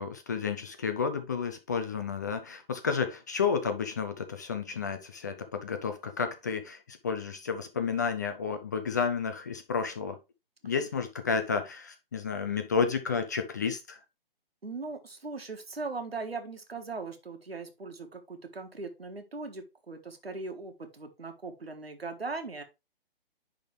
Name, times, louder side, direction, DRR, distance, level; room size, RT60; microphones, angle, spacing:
voice 1, 0.0-10.2 10.6-14.0, left 5 dB, 20° left, 0.4 m, -31 dB
voice 2, 14.6-22.6, right 3 dB, 85° right, 1.5 m, -39 dB
9.9 x 3.7 x 3.2 m
figure-of-eight pair, 135°, 29 cm